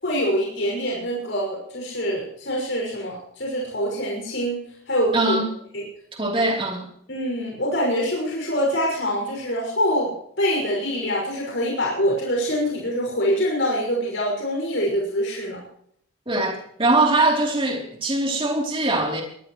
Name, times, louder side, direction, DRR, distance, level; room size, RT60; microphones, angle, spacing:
voice 1, 0.0-4.6 4.9-5.4 7.1-15.6, equal, 60° left, 6.1 m, -25 dB
voice 2, 5.1-5.5 6.2-6.9 16.3-19.2, right 2 dB, 25° right, 3.4 m, -22 dB
22.5 x 17.0 x 3.2 m
head